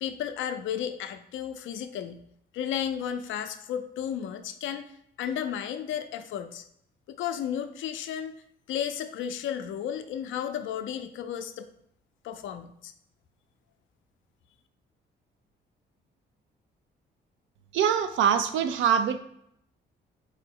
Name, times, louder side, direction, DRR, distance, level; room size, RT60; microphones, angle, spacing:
voice 1, 0.0-2.2 2.5-4.9 5.2-6.6 7.1-8.4 8.7-11.7 12.2-12.9, left 9 dB, 75° left, 9 dB, 0.5 m, -33 dB
voice 2, 17.7-19.2, right 8 dB, 75° right, 9 dB, 0.5 m, -24 dB
4.6 x 2.0 x 4.5 m, 0.74 s
cardioid pair, 90°, 20 cm